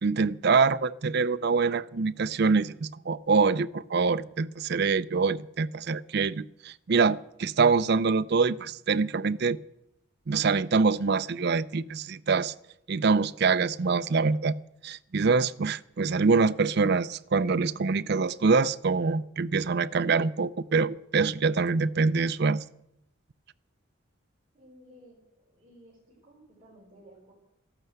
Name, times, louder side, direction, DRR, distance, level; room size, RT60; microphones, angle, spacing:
voice 1, 0.0-9.6 10.3-12.5 12.9-14.5 14.8-22.6, right 4 dB, 50° right, 0.5 m, -25 dB
voice 2, 24.5-27.3, equal, 25° right, 5.3 m, -55 dB
13.5 x 12.0 x 8.0 m
head